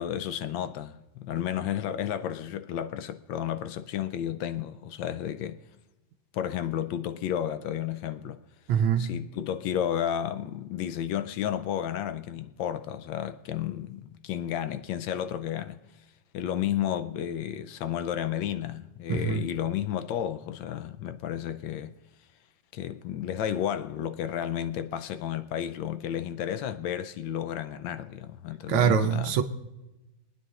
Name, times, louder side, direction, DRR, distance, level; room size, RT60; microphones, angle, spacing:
voice 1, 0.0-5.6 6.3-8.4 9.0-15.8 16.3-21.9 22.7-29.3, left 10 dB, 80° left, 1.3 m, -32 dB
voice 2, 8.7-9.2 19.1-19.4 28.7-29.4, right 7 dB, 85° right, 1.5 m, -24 dB
23.0 x 9.6 x 2.4 m
omnidirectional pair, 2.1 m